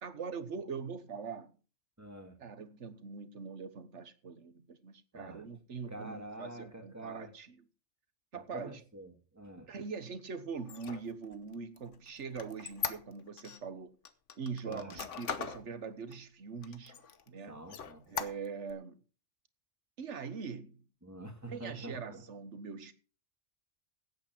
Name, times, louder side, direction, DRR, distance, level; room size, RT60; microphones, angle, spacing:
voice 1, 0.0-1.5 2.4-7.6 8.3-8.8 9.7-13.9 14.4-17.0 17.3-17.6 18.1-19.0 20.0-20.8 21.4-22.9, right 5 dB, 75° right, 1.5 m, -42 dB
voice 2, 2.0-2.4 5.1-5.4 5.9-7.3 8.3-9.7 14.7-15.1 17.5-18.1 21.0-22.2, right 1 dB, 15° right, 2.1 m, -47 dB
Squeak, 10.6-13.6 14.0-15.6 16.1-16.2 16.6-17.3 17.7-18.7, left 7 dB, 75° left, 1.4 m, -40 dB
16.0 x 8.7 x 4.5 m
omnidirectional pair, 1.2 m